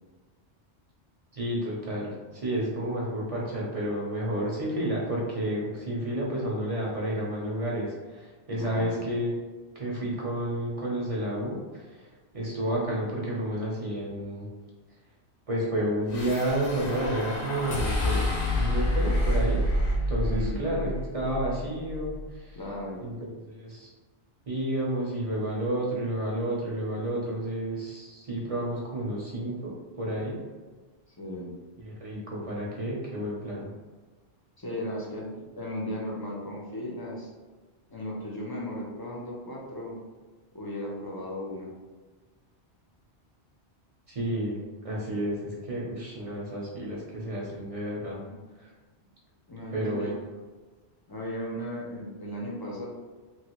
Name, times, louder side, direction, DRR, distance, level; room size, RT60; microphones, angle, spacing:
voice 1, 1.3-9.3 9.8-12.0 12.3-14.5 15.5-18.3 18.6-19.6 20.1-22.6 23.0-23.9 24.5-30.4 31.8-33.7 44.1-48.2 49.7-50.1, right 1 dB, 40° right, -4 dB, 0.6 m, -31 dB
voice 2, 8.6-9.0 20.3-20.7 22.5-23.1 31.2-31.5 34.6-35.3 35.5-37.3 37.9-40.0 40.5-41.7 48.1-48.5 49.5-50.2 51.1-52.9, left 1 dB, 30° left, -3 dB, 0.5 m, -36 dB
sound 1, 16.1-22.5, left 1 dB, 60° left, 0.8 m, -28 dB
3.1 x 2.6 x 2.9 m, 1.3 s
omnidirectional pair, 1.2 m